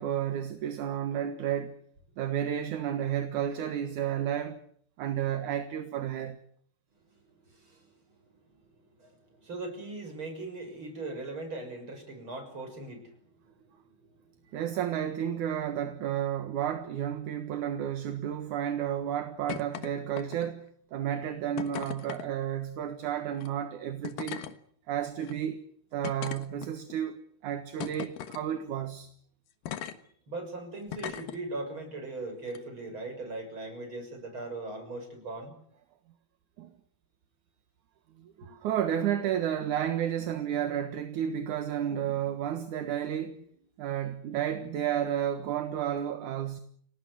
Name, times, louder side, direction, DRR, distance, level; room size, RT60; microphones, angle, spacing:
voice 1, 0.0-1.7 2.2-4.6 5.0-6.4 14.5-20.6 20.9-24.4 24.9-25.6 25.9-29.1 36.6-36.7 38.2-43.4 43.8-46.6, right 10 dB, 60° right, 2.5 m, -32 dB
voice 2, 7.5-7.9 8.5-8.6 9.0-13.1 14.0-14.1 30.3-35.6 38.4-38.5, right 2 dB, 30° right, 7.0 m, -39 dB
sound 1, 19.5-19.9 20.2-20.6 21.6-22.3 23.3-23.5 24.0-24.5 25.2-25.3 26.0-26.9 27.8-28.4 29.7-30.0 30.9-31.4 32.5-32.6, left 11 dB, 65° left, 2.9 m, -38 dB
28.5 x 18.5 x 7.9 m
omnidirectional pair, 4.5 m